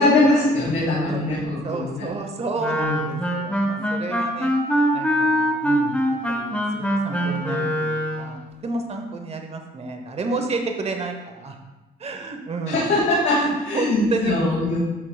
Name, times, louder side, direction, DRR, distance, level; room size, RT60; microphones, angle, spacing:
voice 1, 0.0-2.1 2.8-3.0 12.7-14.8, left 2 dB, 85° left, -8 dB, 2.3 m, -21 dB
voice 2, 1.6-4.5 4.9-6.0 6.3-11.6 12.0-12.9 13.4-14.3, right 3 dB, 30° right, 4 dB, 0.9 m, -30 dB
Wind instrument woodwind instrument, 2.6-8.3, equal, 5° left, 1.0 m, -23 dB
11.5 x 4.7 x 2.3 m, 1.1 s
cardioid pair, 90°, 20 cm